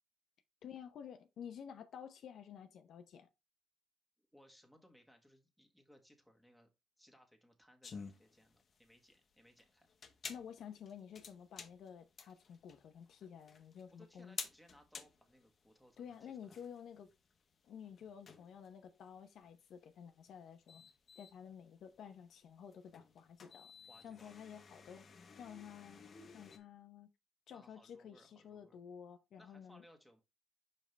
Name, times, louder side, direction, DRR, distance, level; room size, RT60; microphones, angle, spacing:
voice 1, 0.6-3.3 10.3-14.4 16.0-17.1 17.7-20.9 21.2-23.7 24.0-25.0 25.4-26.0 26.3-27.1 27.5-29.8, left 8 dB, 70° left, 0.7 m, -52 dB
voice 2, 4.3-6.7 7.0-9.9 13.9-16.6 23.9-24.6 27.5-28.8 29.4-30.2, equal, ahead, 1.6 m, -65 dB
sound 1, 7.8-26.6, left 5 dB, 50° left, 1.0 m, -53 dB
5.5 x 5.2 x 3.3 m
cardioid pair, 90°, 0 cm